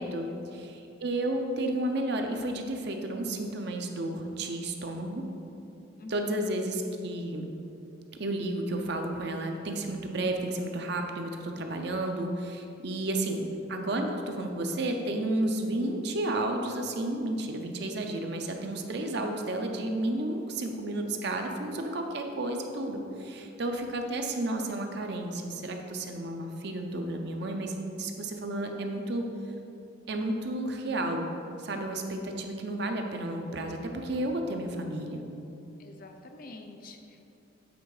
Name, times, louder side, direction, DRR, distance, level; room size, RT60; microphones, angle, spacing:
voice 1, 0.5-5.2 6.1-7.5 8.2-29.2 30.1-31.3 31.6-35.2, right 1 dB, 60° right, 3 dB, 0.6 m, -32 dB
voice 2, 6.0-6.5 13.3-13.5 35.8-37.3, left 2 dB, 50° left, 4 dB, 0.5 m, -47 dB
8.2 x 3.6 x 4.8 m, 2.8 s
head